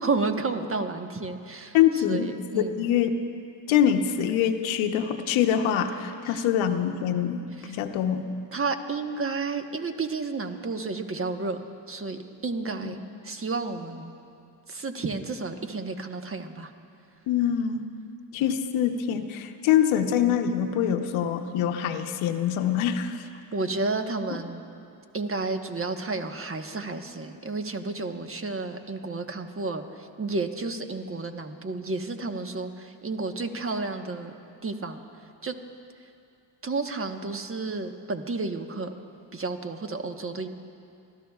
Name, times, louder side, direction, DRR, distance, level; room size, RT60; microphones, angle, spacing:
voice 1, 0.0-2.7 6.2-6.5 7.5-7.8 8.5-14.1 14.7-16.7 23.5-24.6 25.1-34.3 34.6-35.0 35.4-35.5 36.6-38.9 39.3-40.5, right 3 dB, 25° right, 6 dB, 1.3 m, -31 dB
voice 2, 1.7-2.3 2.5-3.1 3.7-7.4 7.8-8.2 12.8-13.0 17.3-17.8 18.3-23.1, left 9 dB, 75° left, 5 dB, 1.0 m, -24 dB
30.0 x 13.5 x 2.4 m, 2.4 s
hypercardioid pair, 55°, 48 cm